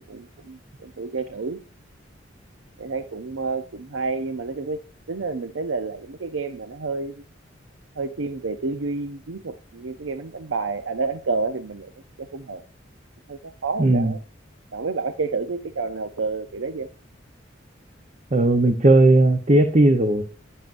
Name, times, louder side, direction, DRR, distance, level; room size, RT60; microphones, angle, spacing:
voice 1, 0.0-1.6 2.8-4.8 5.1-7.2 8.0-11.9 12.2-12.6 13.3-14.2 14.7-16.9, right 4 dB, 90° right, 0.6 m, -29 dB
voice 2, 13.8-14.1 18.3-20.2, right 2 dB, 35° right, 0.8 m, -16 dB
11.5 x 9.3 x 2.5 m
head